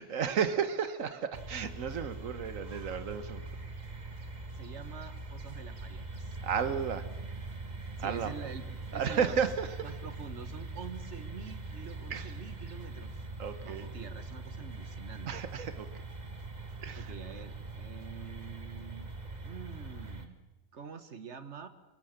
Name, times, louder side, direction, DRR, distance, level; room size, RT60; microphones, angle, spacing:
voice 1, 0.0-3.4 6.4-7.1 8.0-8.3 8.9-9.7 12.1-12.3 13.4-13.9 15.3-15.9 16.8-17.1, right 7 dB, 70° right, 11 dB, 1.6 m, -33 dB
sound 1, 1.3-20.3, right 3 dB, 30° right, 1.6 m, -42 dB
voice 2, 4.5-6.4 8.0-9.4 9.8-13.2 13.6-15.4 17.0-19.1 19.4-20.4 20.7-21.7, right 6 dB, 55° right, 10 dB, 1.7 m, -46 dB
24.0 x 23.5 x 6.7 m, 1.1 s
omnidirectional pair, 1.4 m